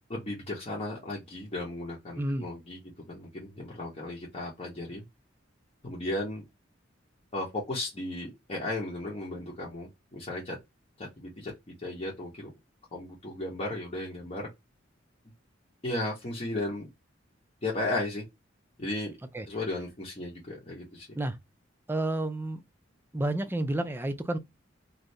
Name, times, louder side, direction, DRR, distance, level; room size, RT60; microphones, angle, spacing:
voice 1, 0.1-2.8 3.1-5.0 5.8-6.4 7.3-10.6 11.0-11.5 11.8-12.5 12.9-14.5 15.8-16.9 17.6-18.2 18.8-19.2 19.5-21.1, left 2 dB, 35° left, 0.9 m, -35 dB
voice 2, 2.2-2.5 19.3-19.5 21.2-21.4 21.9-22.6 23.1-24.4, right 1 dB, 10° right, 0.4 m, -30 dB
2.7 x 2.5 x 3.1 m
head